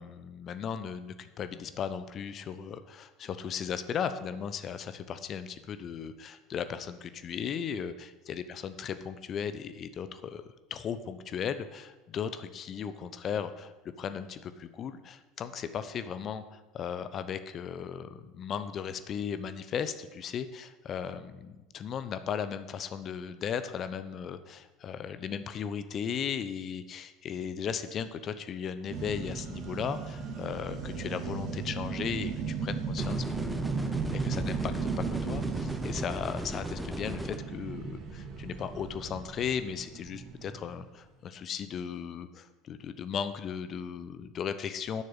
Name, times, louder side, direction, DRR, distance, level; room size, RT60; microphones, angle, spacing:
voice 1, 0.0-10.4 10.7-13.7 14.0-45.0, left 7 dB, 40° left, 11 dB, 1.0 m, -36 dB
sound 1, 28.9-40.8, right 5 dB, 45° right, 2.2 m, -36 dB
sound 2, 33.0-37.4, right 1 dB, 5° right, 1.1 m, -36 dB
11.0 x 6.6 x 8.2 m, 1.1 s
hypercardioid pair, 70°, 0 cm